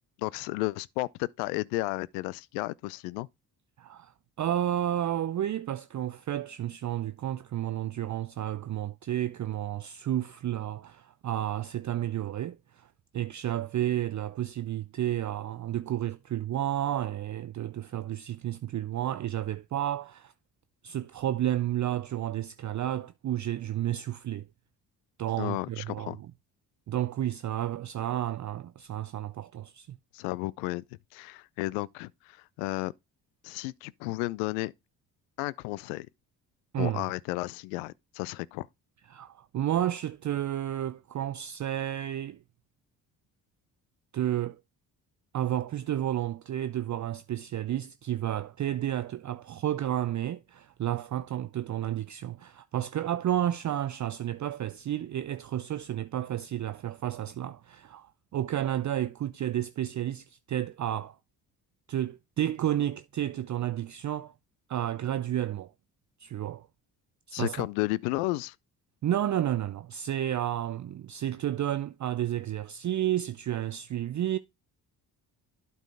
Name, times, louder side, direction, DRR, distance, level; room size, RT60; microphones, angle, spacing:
voice 1, 0.2-3.3 25.4-26.2 30.1-30.8 31.1-32.9 33.4-34.7 35.4-36.1 36.8-38.7 67.3-68.5, left 21 dB, 75° left, 0.6 m, -33 dB
voice 2, 3.8-12.9 13.1-20.3 20.8-24.5 25.2-26.3 26.9-30.0 36.7-37.0 39.1-42.4 44.1-44.6 45.3-61.2 61.9-64.3 64.7-65.7 66.2-66.7 67.3-67.7 69.0-74.4, right 12 dB, 35° right, 0.6 m, -31 dB
12.0 x 4.5 x 3.5 m
hypercardioid pair, 45°, 49 cm